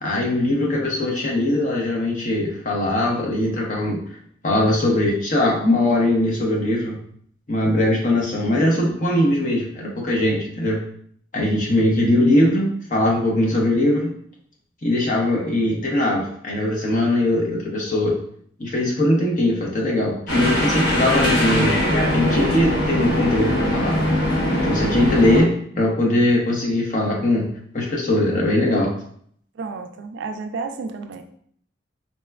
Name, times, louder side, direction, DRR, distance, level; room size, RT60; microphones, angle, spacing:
voice 1, 0.0-4.0 4.4-7.0 7.5-10.8 11.3-14.1 14.8-18.1 18.6-21.8 22.1-25.5 25.8-27.5 27.7-28.9, left 1 dB, 40° left, -2 dB, 0.7 m, -20 dB
sound 1, 20.3-25.4, equal, 60° left, 1.0 m, -21 dB
voice 2, 29.6-31.2, right 4 dB, 60° right, 6 dB, 0.3 m, -31 dB
4.1 x 2.2 x 2.2 m, 0.62 s
head